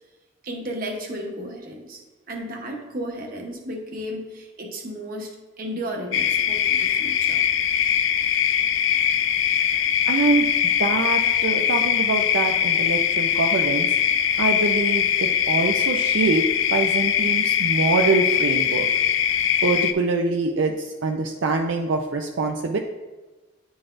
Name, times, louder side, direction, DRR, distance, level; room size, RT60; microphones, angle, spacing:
voice 1, 0.4-2.0 2.3-5.3 5.6-7.4, equal, 50° right, 1 dB, 1.0 m, -33 dB
sound 1, 6.1-19.9, left 9 dB, 80° left, 0.4 m, -21 dB
voice 2, 10.1-10.5 10.8-13.9 14.4-18.9 19.6-22.8, right 3 dB, 75° right, 2 dB, 0.5 m, -24 dB
10.0 x 4.0 x 2.5 m, 1.2 s
head